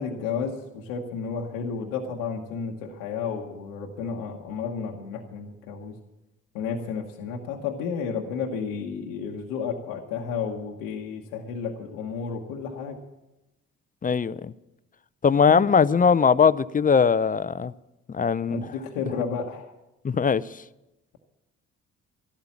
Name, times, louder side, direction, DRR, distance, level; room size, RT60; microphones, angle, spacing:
voice 1, 0.0-5.9 6.5-13.0 15.4-15.6 18.5-19.7, left 6 dB, 85° left, 1.2 m, -32 dB
voice 2, 14.0-14.5 15.2-17.7 18.1-18.7 20.0-20.4, left 6 dB, 25° left, 0.6 m, -20 dB
13.0 x 12.0 x 7.2 m
hypercardioid pair, 50°, 33 cm